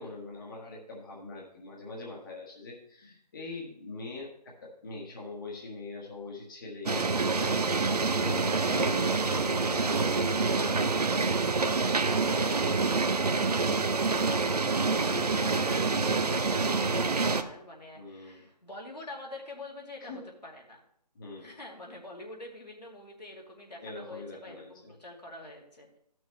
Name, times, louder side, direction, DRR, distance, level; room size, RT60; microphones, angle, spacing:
voice 1, 0.0-10.3 10.8-11.4 12.4-13.1 17.9-18.5 20.0-20.2 21.1-21.5 23.8-24.9, left 2 dB, 30° left, -3 dB, 1.4 m, -43 dB
sound 1, 6.9-17.4, right 4 dB, 65° right, 0.7 m, -27 dB
voice 2, 15.1-20.8 21.4-26.0, left 2 dB, 75° left, -1 dB, 2.4 m, -46 dB
14.0 x 6.2 x 3.1 m, 0.69 s
figure-of-eight pair, 150°, 21 cm